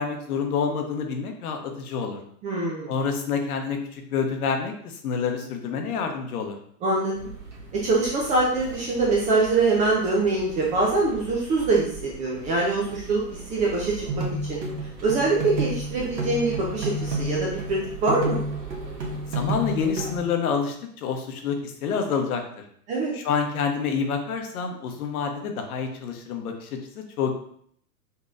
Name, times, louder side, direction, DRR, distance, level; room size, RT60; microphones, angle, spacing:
voice 1, 0.0-2.2 2.9-6.6 19.3-22.6 23.1-26.7 27.0-27.3, left 6 dB, 60° left, 4 dB, 0.9 m, -28 dB
voice 2, 2.4-2.9 6.8-7.1 7.7-14.6 15.0-18.4 22.9-23.1, right 3 dB, 15° right, -3 dB, 0.4 m, -24 dB
sound 1, 7.1-20.2, right 3 dB, 65° right, 1.3 m, -41 dB
sound 2, 14.1-20.3, right 1 dB, 85° right, 1.2 m, -30 dB
5.3 x 2.9 x 2.5 m, 0.64 s
hypercardioid pair, 100°, 49 cm